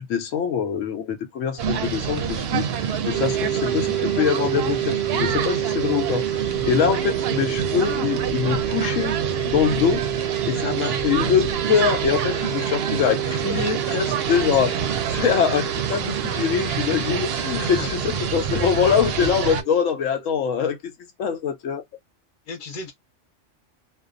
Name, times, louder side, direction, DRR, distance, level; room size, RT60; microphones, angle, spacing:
voice 1, 0.0-9.2 9.4-10.0 10.4-14.8 15.1-20.9 21.2-21.8, left 7 dB, 85° left, 1.0 m, -24 dB
sound 1, 1.6-19.6, right 7 dB, 65° right, 0.7 m, -27 dB
sound 2, 3.1-20.5, right 12 dB, 30° right, 0.3 m, -30 dB
voice 2, 17.6-17.9 18.7-19.0 22.5-22.9, left 4 dB, 50° left, 0.8 m, -35 dB
2.5 x 2.2 x 2.4 m
omnidirectional pair, 1.3 m